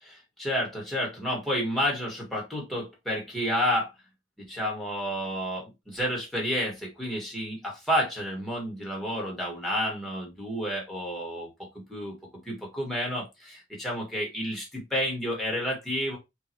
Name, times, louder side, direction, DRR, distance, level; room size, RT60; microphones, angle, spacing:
voice 1, 0.0-3.9 4.4-12.1 12.4-16.2, equal, ahead, 1.6 m, -30 dB
4.7 x 2.6 x 2.9 m
head